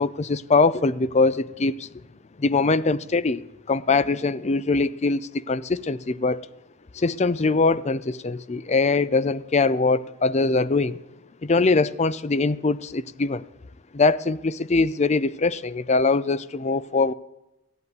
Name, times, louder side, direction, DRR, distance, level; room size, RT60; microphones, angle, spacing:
voice 1, 0.0-1.9 2.4-6.5 6.9-11.0 11.4-13.4 13.9-17.1, left 3 dB, 30° left, 0.5 m, -22 dB
14.5 x 8.1 x 9.5 m
head